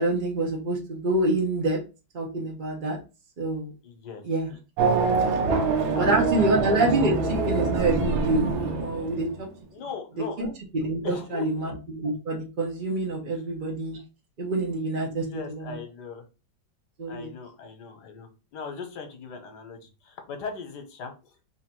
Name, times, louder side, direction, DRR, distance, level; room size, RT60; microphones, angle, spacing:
voice 1, 0.0-1.8 2.1-3.0 3.4-3.7 4.2-4.5 5.9-9.5 10.2-14.0 14.4-15.8 17.0-17.3, right 2 dB, 50° right, 0 dB, 0.6 m, -27 dB
voice 2, 3.8-4.2 5.4-5.6 5.9-6.8 9.7-10.4 11.0-11.7 15.1-16.2 17.1-21.3, left 5 dB, 65° left, 6 dB, 1.4 m, -39 dB
Race car auto racing / Accelerating revving vroom, 4.8-9.5, right 4 dB, 80° right, 1.5 m, -25 dB
3.6 x 2.6 x 4.4 m, 0.30 s
omnidirectional pair, 2.1 m